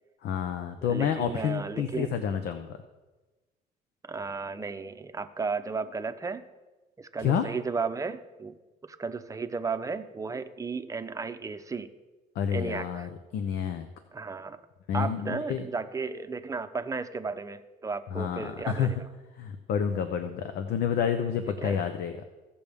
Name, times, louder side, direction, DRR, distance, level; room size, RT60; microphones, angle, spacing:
voice 1, 0.2-2.7 7.2-7.5 12.3-13.9 14.9-15.6 18.1-18.9 19.4-22.2, left 8 dB, 75° left, 8 dB, 0.7 m, -29 dB
voice 2, 0.9-2.1 4.1-6.4 7.0-8.5 8.8-11.9 12.5-13.1 14.1-14.6 14.9-19.1 21.6-21.9, right 4 dB, 20° right, 9 dB, 0.7 m, -34 dB
16.0 x 6.8 x 3.5 m, 1.2 s
cardioid pair, 110°, 17 cm